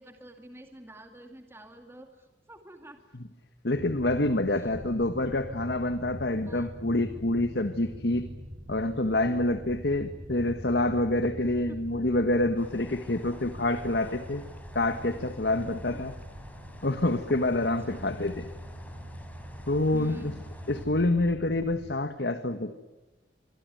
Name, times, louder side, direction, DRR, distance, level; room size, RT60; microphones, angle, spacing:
voice 1, 0.0-3.0 6.5-6.7 11.7-11.8 15.9-16.1 17.9-18.1 19.9-20.4, right 1 dB, 15° right, 5 dB, 2.2 m, -47 dB
voice 2, 3.6-8.3 8.7-14.5 14.7-16.1 16.8-18.5 19.7-20.3 20.7-22.7, left 2 dB, 70° left, 9 dB, 1.5 m, -27 dB
sound 1, 3.7-21.9, equal, 45° right, 6.6 m, -43 dB
sound 2, 12.6-20.9, left 1 dB, 10° left, 4.2 m, -52 dB
26.5 x 23.0 x 9.3 m, 1.1 s
head